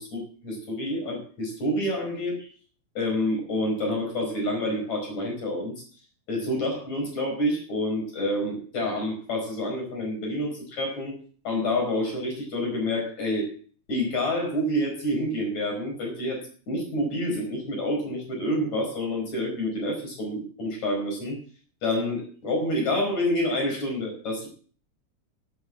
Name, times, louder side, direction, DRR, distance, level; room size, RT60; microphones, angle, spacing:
voice 1, 0.0-2.5 2.9-5.7 6.3-11.2 11.4-13.5 13.9-16.4 16.7-21.4 21.8-24.5, left 1 dB, 60° left, 0 dB, 6.3 m, -28 dB
11.5 x 9.8 x 7.3 m, 0.43 s
omnidirectional pair, 3.7 m